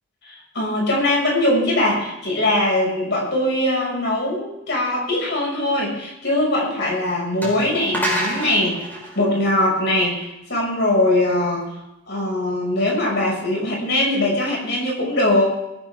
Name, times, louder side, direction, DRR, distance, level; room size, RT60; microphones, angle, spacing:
voice 1, 0.2-8.9 9.1-11.6 12.1-15.5, left 1 dB, 55° left, -2 dB, 6.3 m, -21 dB
sound 1, 6.8-6.9 7.4-10.2, equal, 10° left, 4.8 m, -28 dB
19.5 x 14.5 x 3.7 m, 0.89 s
head